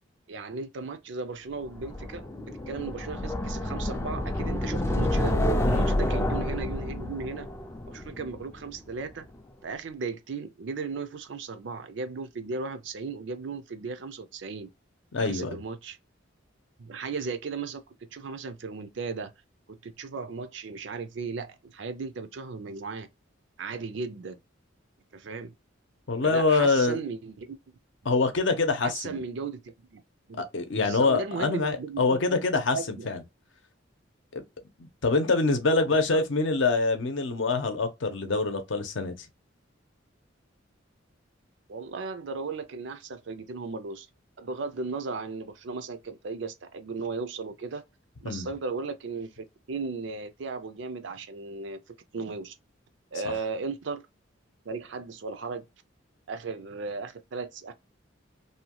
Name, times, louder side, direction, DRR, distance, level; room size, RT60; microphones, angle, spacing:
voice 1, 0.3-5.3 5.7-7.5 7.9-9.3 9.6-14.7 15.3-16.0 16.8-17.8 18.1-19.3 19.8-23.1 23.6-24.4 25.1-25.5 26.2-27.6 28.8-30.0 30.3-30.5 30.8-33.1 35.9-36.2 41.7-44.1 44.4-47.8 48.2-51.8 52.1-52.6 53.1-54.1 54.7-55.6 56.3-57.7, right 4 dB, 65° right, 0.5 m, -36 dB
sound 1, 1.7-8.8, left 1 dB, 15° left, 0.4 m, -29 dB
voice 2, 5.6-6.0 15.1-15.6 26.1-27.0 28.0-29.2 30.5-33.2 34.3-34.4 35.0-39.2 48.2-48.5 53.2-53.3, left 3 dB, 65° left, 0.7 m, -25 dB
2.7 x 2.2 x 2.9 m
head